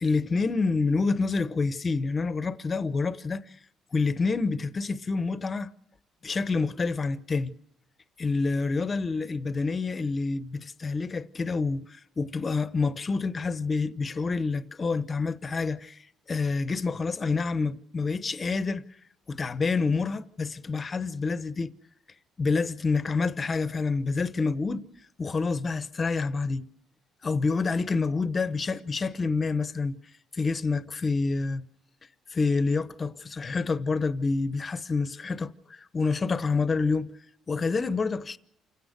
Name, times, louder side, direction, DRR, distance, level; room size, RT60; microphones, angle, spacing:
voice 1, 0.0-3.4 3.9-5.7 6.2-7.5 8.2-16.0 16.3-18.8 19.3-21.7 22.4-24.9 25.2-26.7 27.2-30.0 30.3-31.6 32.3-37.1 37.5-38.4, left 4 dB, 25° left, 0.9 m, -28 dB
28.5 x 16.5 x 6.6 m
cardioid pair, 160°, 0 cm